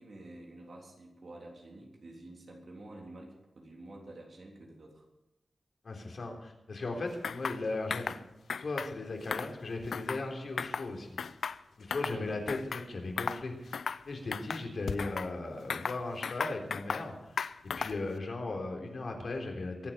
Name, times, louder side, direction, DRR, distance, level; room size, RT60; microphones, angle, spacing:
voice 1, 0.0-5.0 12.1-12.4, right 2 dB, 60° right, -1 dB, 3.4 m, -49 dB
voice 2, 5.8-8.1 8.6-11.1 11.8-13.8 14.1-17.4 17.6-19.9, left 2 dB, 60° left, 1 dB, 3.6 m, -37 dB
sound 1, 7.2-7.6 7.9-8.2 8.5-8.9 9.2-10.3 10.6-10.9 11.2-12.2 12.5-12.9 13.2-13.4 13.7-14.0 14.3-15.3 15.7-17.1 17.4-18.1, left 6 dB, 85° left, 0.5 m, -36 dB
23.0 x 8.7 x 5.7 m, 0.93 s
wide cardioid pair, 135°, 0 cm